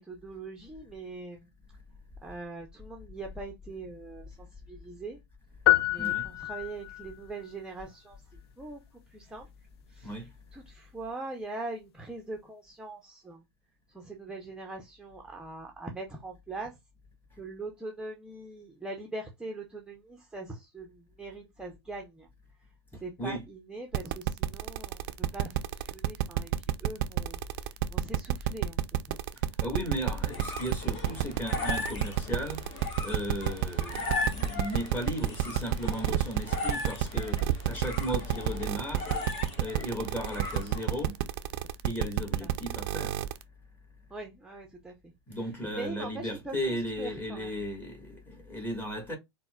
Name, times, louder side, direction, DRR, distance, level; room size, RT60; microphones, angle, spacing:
voice 1, 0.0-1.5 2.2-5.2 5.8-8.2 8.6-8.8 9.1-9.5 9.9-13.4 13.9-16.8 17.4-22.3 22.9-28.8 29.1-29.2 42.4-42.5 44.1-44.9 45.6-47.5, right 2 dB, 5° right, 0.6 m, -42 dB
sound 1, 5.7-7.1, left 16 dB, 70° left, 0.4 m, -26 dB
voice 2, 6.0-6.3 10.0-10.3 23.2-23.4 29.6-32.6 33.0-39.1 39.6-41.2 41.8-43.2 45.3-49.2, equal, 15° left, 1.4 m, -35 dB
sound 2, 23.9-43.4, right 14 dB, 55° right, 0.4 m, -29 dB
sound 3, 29.9-41.1, left 3 dB, 40° left, 1.4 m, -38 dB
4.1 x 2.1 x 2.3 m
hypercardioid pair, 100°, 14 cm